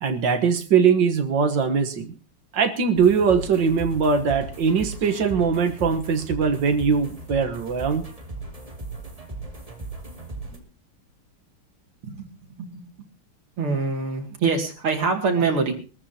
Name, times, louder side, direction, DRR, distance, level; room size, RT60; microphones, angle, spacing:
voice 1, 0.0-2.1 2.5-8.1, right 6 dB, 60° right, 7 dB, 1.9 m, -21 dB
sound 1, 3.0-10.6, right 2 dB, 15° right, 2.4 m, -37 dB
voice 2, 13.6-15.7, right 4 dB, 80° right, 3 dB, 3.4 m, -24 dB
22.5 x 14.0 x 2.9 m, 0.34 s
omnidirectional pair, 2.4 m